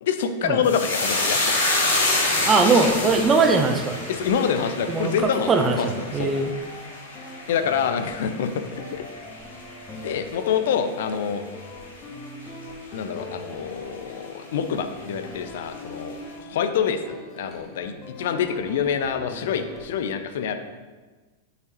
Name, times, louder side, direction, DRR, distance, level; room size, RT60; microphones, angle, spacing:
voice 1, 0.0-1.5 4.1-5.5 5.8-5.9 6.1-6.3 7.5-9.0 10.0-11.4 12.9-20.6, left 7 dB, 55° left, 8 dB, 0.6 m, -26 dB
sound 1, 0.6-9.2 9.5-10.2 10.5-10.7, left 2 dB, 75° left, 2.1 m, -27 dB
sound 2, 1.4-19.9, left 1 dB, 25° left, 1.4 m, -41 dB
voice 2, 2.5-4.0 4.9-5.1 5.5-6.5, right 4 dB, 20° right, 6 dB, 0.8 m, -20 dB
8.2 x 6.9 x 3.0 m, 1.3 s
figure-of-eight pair, 90°, 0 cm